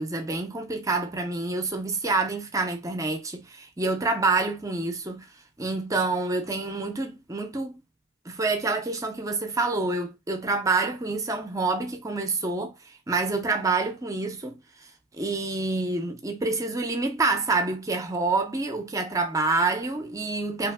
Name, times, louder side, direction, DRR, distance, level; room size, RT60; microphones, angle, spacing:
voice 1, 0.0-5.3 5.6-7.8 8.3-14.6 15.1-20.7, right 3 dB, 15° right, 0.4 m, -27 dB
2.8 x 2.5 x 2.4 m
head